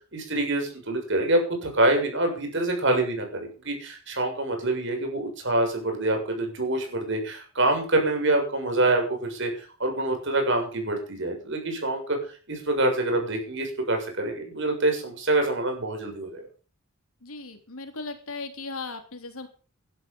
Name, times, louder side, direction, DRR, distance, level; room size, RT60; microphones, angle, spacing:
voice 1, 0.1-12.2 12.5-16.4, right 2 dB, 55° right, 4 dB, 6.9 m, -26 dB
voice 2, 17.2-19.5, left 3 dB, 80° left, 6 dB, 3.5 m, -37 dB
16.0 x 12.5 x 5.5 m, 0.38 s
head